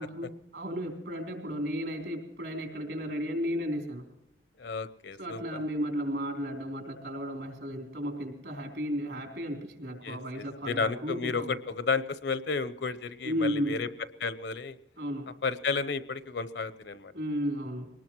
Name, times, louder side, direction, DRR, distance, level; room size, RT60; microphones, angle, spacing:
voice 1, 0.0-4.1 5.2-11.6 13.2-13.8 15.0-15.3 17.1-17.9, equal, 80° right, 2 dB, 3.6 m, -34 dB
voice 2, 4.6-5.4 10.0-13.9 14.2-14.7 15.4-17.1, left 4 dB, 80° left, 13 dB, 0.8 m, -32 dB
23.0 x 19.5 x 3.1 m, 0.93 s
head